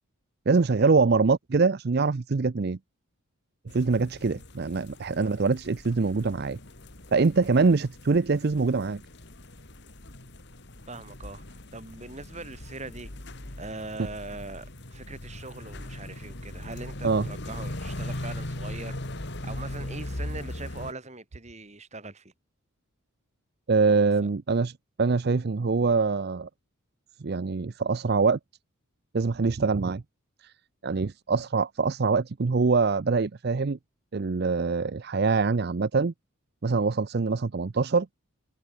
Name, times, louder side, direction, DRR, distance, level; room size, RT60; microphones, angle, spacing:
voice 1, 0.5-2.8 3.7-6.6 7.1-9.0 17.0-17.3 23.7-26.5 27.2-28.4 29.1-30.0 30.4-30.5 30.8-33.8 34.1-36.1 36.6-38.1, right 4 dB, 50° right, 0.5 m, -24 dB
sound 1, 3.7-20.9, left 1 dB, 50° left, 2.5 m, -39 dB
voice 2, 10.9-11.4 11.7-13.1 13.6-19.0 19.4-22.3 23.9-24.0, right 2 dB, 30° right, 2.8 m, -41 dB
open air
head